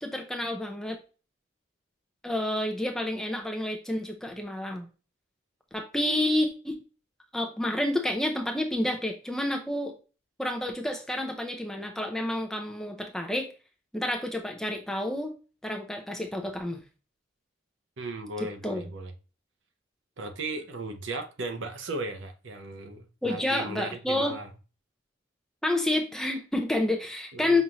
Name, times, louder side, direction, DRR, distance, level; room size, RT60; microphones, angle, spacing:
voice 1, 0.0-1.0 2.2-4.9 5.7-6.8 7.3-9.9 10.4-13.5 13.9-15.3 15.6-16.8 18.6-18.8 23.2-24.4 25.6-27.6, left 1 dB, 5° left, 2 dB, 0.5 m, -29 dB
voice 2, 18.0-19.1 20.2-24.5 27.3-27.6, right 2 dB, 80° right, 7 dB, 0.7 m, -36 dB
5.5 x 2.5 x 2.9 m, 0.34 s
head